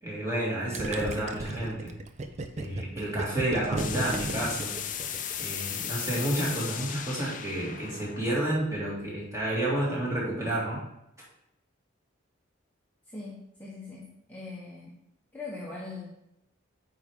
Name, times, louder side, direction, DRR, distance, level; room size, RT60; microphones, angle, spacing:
voice 1, 0.0-1.9 2.6-4.8 5.4-10.8, right 1 dB, 15° right, -6 dB, 2.3 m, -30 dB
Gurgling, 0.7-5.4, right 2 dB, 35° right, 0.5 m, -35 dB
sound 1, 3.8-9.5, left 9 dB, 40° left, 0.5 m, -37 dB
voice 2, 13.0-15.0 15.3-16.1, left 3 dB, 10° left, -6 dB, 1.0 m, -41 dB
8.8 x 4.7 x 3.6 m, 0.81 s
head